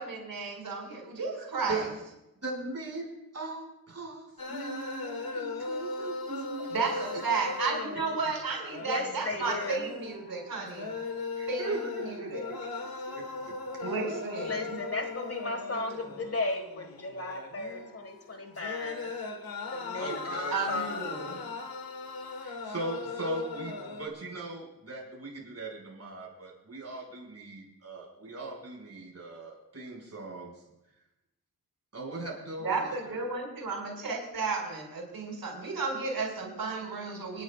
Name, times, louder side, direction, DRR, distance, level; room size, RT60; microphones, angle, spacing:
voice 1, 0.0-1.9 6.7-10.9 11.5-12.5 13.8-14.8 20.5-21.4 32.6-37.4, right 4 dB, 85° right, -2 dB, 5.7 m, -33 dB
voice 2, 1.4-1.9 2.4-6.7 11.4-12.6 13.1-13.9 20.0-20.7 22.4-30.5 31.9-33.2, right 3 dB, 45° right, -2 dB, 5.6 m, -39 dB
sound 1, 4.4-24.1, left 4 dB, 80° left, 1.5 m, -38 dB
voice 3, 8.8-9.9 14.4-19.1 19.7-21.0, left 2 dB, 40° left, 5 dB, 1.8 m, -35 dB
29.0 x 11.0 x 2.4 m, 0.92 s
wide cardioid pair, 120°, 35 cm